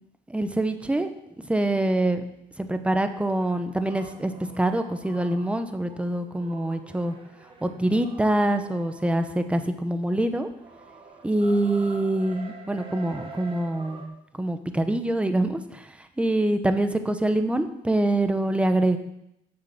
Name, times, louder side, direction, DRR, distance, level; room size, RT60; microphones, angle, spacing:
voice 1, 0.3-1.1 1.4-2.2 2.6-4.3 4.6-7.1 7.6-10.5 11.2-14.0 14.4-15.9 16.2-19.0, right 1 dB, 5° right, 8 dB, 1.0 m, -25 dB
sound 1, 3.3-9.8 10.1-14.1, right 3 dB, 30° right, 1.8 m, -46 dB
8.7 x 6.6 x 7.6 m, 0.82 s
cardioid pair, 110°, 17 cm